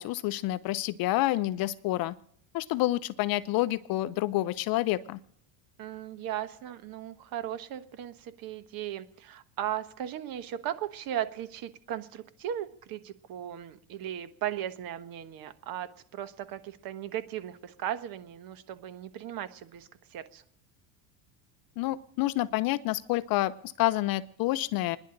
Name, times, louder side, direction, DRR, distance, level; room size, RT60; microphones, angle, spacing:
voice 1, 0.0-2.1 2.5-5.2 21.8-25.0, left 16 dB, 50° left, 14 dB, 0.6 m, -28 dB
voice 2, 5.8-20.4, right 11 dB, 50° right, 12 dB, 1.2 m, -37 dB
27.5 x 10.5 x 3.9 m, 0.69 s
supercardioid pair, 110°, 45 cm